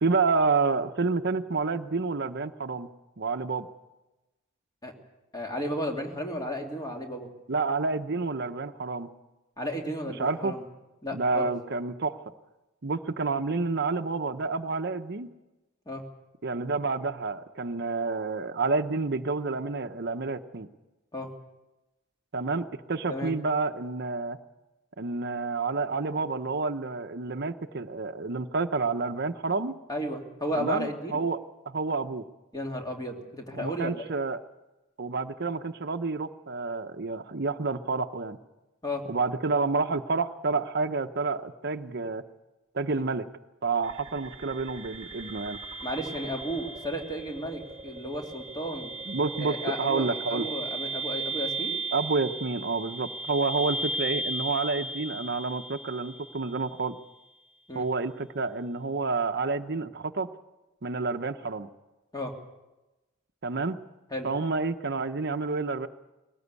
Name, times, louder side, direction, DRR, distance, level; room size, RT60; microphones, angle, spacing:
voice 1, 0.0-2.9 3.2-3.7 7.5-9.1 10.2-10.6 11.1-12.2 12.8-15.3 16.4-20.7 22.3-24.4 25.0-29.7 30.5-31.4 31.7-32.2 33.6-34.4 35.0-38.4 39.1-42.2 42.7-43.3 43.6-45.6 49.1-50.5 51.9-57.0 57.7-60.3 60.8-61.7 63.4-63.8 64.2-65.9, right 4 dB, 55° right, 9 dB, 0.8 m, -29 dB
voice 2, 5.3-7.3 9.6-10.6 11.0-11.5 15.9-16.0 21.1-21.3 23.1-23.3 29.9-31.1 32.5-34.1 38.8-39.0 42.9-43.0 45.8-48.9 49.4-51.8 57.7-57.9 62.1-62.3 64.1-64.3, equal, 20° left, 2 dB, 2.8 m, -33 dB
sound 1, 43.8-56.8, right 2 dB, 25° right, 1.4 m, -36 dB
20.5 x 18.0 x 8.3 m, 1.0 s
head